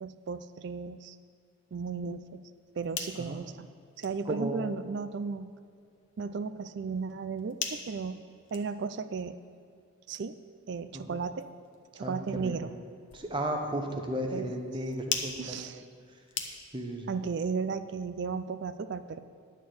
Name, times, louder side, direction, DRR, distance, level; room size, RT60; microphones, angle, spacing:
voice 1, 0.0-1.2 1.7-2.4 2.8-3.7 4.0-5.5 6.2-8.2 8.5-9.4 10.1-10.4 10.7-11.5 11.9-12.7 14.3-14.5 15.4-15.8 16.5-16.6 17.1-19.2, right 5 dB, 55° right, 13 dB, 0.4 m, -35 dB
sound 1, 2.6-17.0, left 7 dB, 55° left, 0.8 m, -44 dB
voice 2, 4.3-4.6 11.1-11.2 12.0-12.5 13.1-15.7 16.7-17.1, right 1 dB, 20° right, 3 dB, 0.8 m, -34 dB
11.0 x 4.4 x 7.7 m, 2.2 s
head